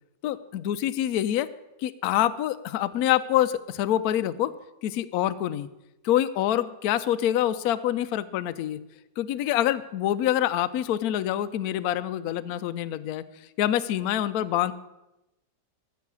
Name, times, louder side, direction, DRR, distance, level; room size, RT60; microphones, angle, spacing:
voice 1, 0.2-1.5 1.8-4.5 4.8-5.7 6.0-8.8 9.2-13.2 13.6-14.7, left 12 dB, 70° left, 12 dB, 0.9 m, -26 dB
14.0 x 7.0 x 6.1 m, 0.94 s
omnidirectional pair, 2.0 m